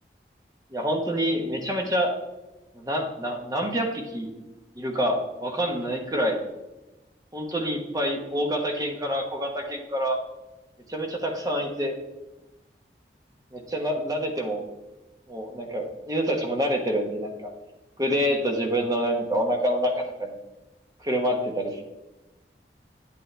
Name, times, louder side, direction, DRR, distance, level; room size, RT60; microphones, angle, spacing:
voice 1, 0.7-2.1 2.7-4.3 4.8-6.4 7.3-10.2 10.9-12.0 13.5-14.7 15.3-17.5 18.0-20.4 21.0-21.8, equal, 20° right, 2 dB, 1.2 m, -27 dB
11.0 x 8.4 x 3.4 m, 1.0 s
head